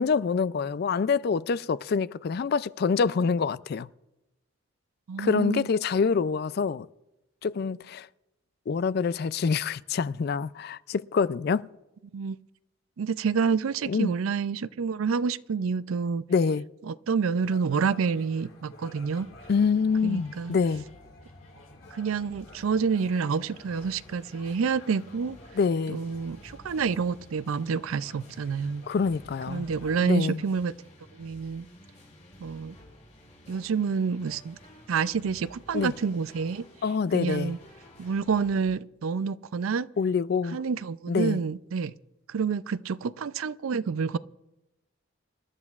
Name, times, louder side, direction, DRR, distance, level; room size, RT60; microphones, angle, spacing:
voice 1, 0.0-3.9 5.2-6.9 7.4-8.1 8.7-11.7 13.9-14.2 16.3-16.7 19.5-20.8 25.5-26.0 28.9-29.7 30.0-30.4 35.7-35.9 36.8-37.5 40.0-40.6 41.1-41.4, left 5 dB, 50° left, 0.3 m, -26 dB
voice 2, 5.1-5.7 12.1-12.4 13.0-16.3 16.9-19.3 20.0-20.5 21.9-25.4 25.9-28.8 29.5-30.7 31.2-31.7 32.4-32.7 33.5-34.6 34.9-36.6 37.1-37.6 38.0-39.9 40.5-41.9 42.3-44.2, right 5 dB, 90° right, 0.4 m, -28 dB
sound 1, 17.4-30.0, left 2 dB, 75° left, 3.4 m, -52 dB
sound 2, 19.0-38.7, left 1 dB, 35° left, 5.5 m, -53 dB
26.5 x 12.5 x 2.4 m
head